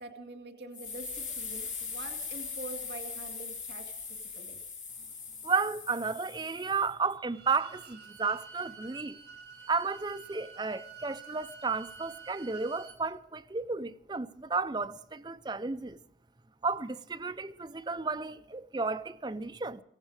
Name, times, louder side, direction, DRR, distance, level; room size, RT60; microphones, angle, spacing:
voice 1, 0.0-4.6, right 2 dB, 80° right, 2.1 m, -45 dB
sound 1, 0.7-6.9, left 5 dB, 45° left, 3.8 m, -40 dB
voice 2, 5.4-9.2 9.7-16.0 16.6-19.8, right 4 dB, 25° right, 0.5 m, -33 dB
Bowed string instrument, 7.3-13.0, right 5 dB, 65° right, 3.1 m, -49 dB
16.0 x 15.5 x 4.9 m
head